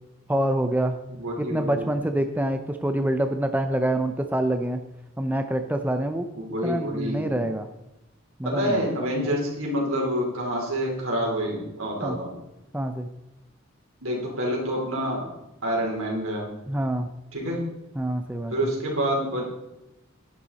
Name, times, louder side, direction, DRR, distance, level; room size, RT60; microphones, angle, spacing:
voice 1, 0.3-1.0 1.4-4.8 5.2-6.3 6.6-7.7 8.4-8.9 12.0-12.2 12.7-13.1 16.7-17.1 18.0-18.5, right 1 dB, 10° right, 6 dB, 0.6 m, -26 dB
voice 2, 1.1-1.9 6.3-7.3 8.4-12.4 14.0-15.3 15.6-16.5 17.3-17.6 18.5-19.5, equal, 85° right, -2 dB, 4.1 m, -27 dB
11.0 x 10.5 x 4.1 m, 0.92 s
head